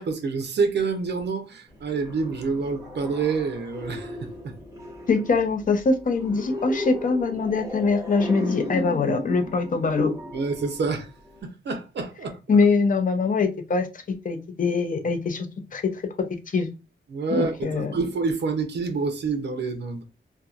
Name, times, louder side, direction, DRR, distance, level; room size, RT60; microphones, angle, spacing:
voice 1, 0.0-4.2 4.4-4.6 10.3-11.1 11.4-12.6 17.1-20.0, right 4 dB, 70° right, 0.6 m, -27 dB
sound 1, 1.7-11.4, left 2 dB, 15° right, 0.8 m, -36 dB
voice 2, 5.1-10.1 12.5-13.9 14.2-15.5 15.7-15.8 16.5-16.7 17.3-17.9, left 4 dB, 45° left, 0.5 m, -23 dB
2.7 x 2.2 x 2.3 m
wide cardioid pair, 155°, 19 cm